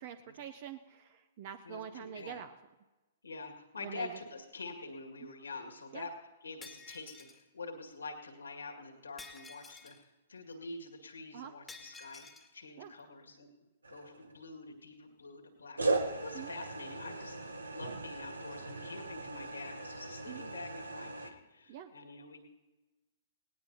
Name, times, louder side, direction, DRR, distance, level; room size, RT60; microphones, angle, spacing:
voice 1, 0.0-2.5 3.8-4.1 5.2-5.3 5.9-6.1 11.3-11.5 12.8-12.9 16.3-16.5 20.3-20.4 21.7-21.9, right 9 dB, 45° right, 11 dB, 0.6 m, -45 dB
voice 2, 1.6-2.4 3.2-6.1 6.4-13.5 13.9-22.4, left 3 dB, 85° left, 2 dB, 2.0 m, -46 dB
Shatter, 6.6-7.4 9.2-10.0 11.7-12.5, left 4 dB, 5° left, 1.4 m, -51 dB
sound 1, 13.8-14.5 15.8-21.3, right 2 dB, 85° right, 1.0 m, -38 dB
18.5 x 18.0 x 2.8 m, 1.2 s
hypercardioid pair, 120°, 0 cm